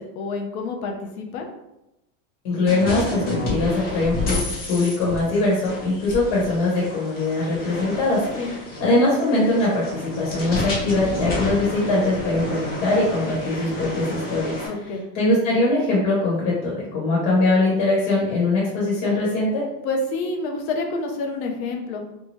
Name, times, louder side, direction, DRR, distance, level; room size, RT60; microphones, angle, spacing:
voice 1, 0.0-1.5 8.4-8.5 14.7-15.1 19.8-22.0, left 3 dB, 90° left, 3 dB, 0.7 m, -28 dB
voice 2, 2.4-4.4 4.7-8.3 8.8-14.5 15.1-19.6, left 2 dB, 60° left, -5 dB, 1.1 m, -21 dB
sound 1, 2.7-14.7, left 1 dB, 25° left, 0.6 m, -30 dB
2.7 x 2.2 x 3.0 m, 0.89 s
supercardioid pair, 155°, 41 cm